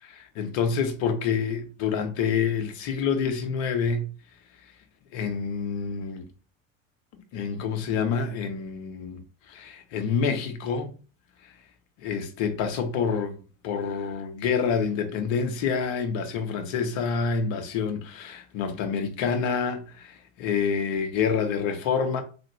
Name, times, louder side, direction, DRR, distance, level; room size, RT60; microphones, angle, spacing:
voice 1, 0.0-4.1 5.1-6.3 7.3-9.2 9.5-10.9 11.4-11.5 12.0-13.4 13.6-22.2, left 6 dB, 45° left, 0.7 m, -27 dB
3.3 x 2.5 x 3.1 m
figure-of-eight pair, 75°, 39 cm